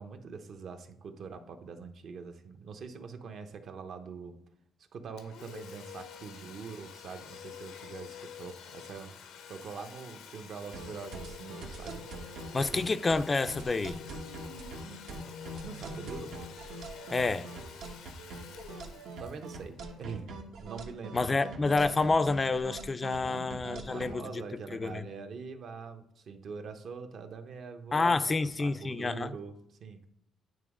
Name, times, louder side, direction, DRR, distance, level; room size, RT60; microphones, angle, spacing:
voice 1, 0.0-4.4 4.9-9.2 9.5-12.0 12.5-12.9 15.6-16.4 19.2-21.7 23.2-30.0, right 5 dB, 65° right, 0.8 m, -44 dB
Domestic sounds home sounds, 5.2-20.6, left 7 dB, 90° left, 0.7 m, -49 dB
sound 1, 10.7-24.1, right 2 dB, 80° right, 1.0 m, -43 dB
voice 2, 12.5-14.0 17.1-17.5 21.1-24.2 24.8-25.0 27.9-29.3, left 3 dB, 30° left, 0.3 m, -28 dB
9.0 x 3.1 x 4.8 m
cardioid pair, 90°, 0 cm